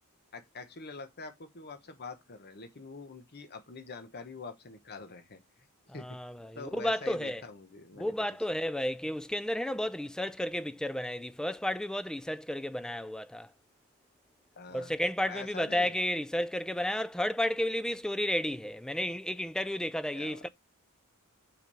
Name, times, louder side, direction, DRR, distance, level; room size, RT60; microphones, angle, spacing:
voice 1, 0.3-5.4 5.9-6.2 6.5-8.1 8.5-8.6 14.5-14.9 15.3-15.9 20.1-20.4, left 4 dB, 45° left, 1.1 m, -45 dB
voice 2, 5.9-7.4 8.0-13.5 14.7-20.5, left 1 dB, 5° left, 0.4 m, -32 dB
5.8 x 5.2 x 5.4 m
head